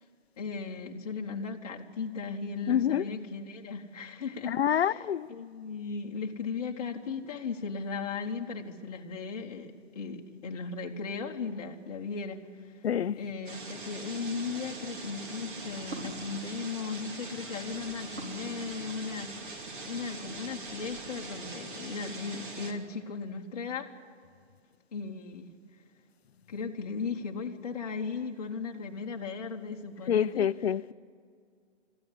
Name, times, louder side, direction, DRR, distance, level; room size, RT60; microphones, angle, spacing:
voice 1, 0.4-5.0 5.3-12.8 13.2-19.5 19.8-23.9 24.9-25.5 26.5-30.5, left 5 dB, 30° left, 1.2 m, -37 dB
voice 2, 2.7-3.1 4.5-5.3 12.8-13.2 30.1-30.9, left 9 dB, 60° left, 0.5 m, -27 dB
sound 1, 13.5-22.7, right 3 dB, 45° right, 2.5 m, -42 dB
sound 2, 14.3-21.3, right 2 dB, 75° right, 5.3 m, -49 dB
22.0 x 14.0 x 9.9 m
hypercardioid pair, 165°, 36 cm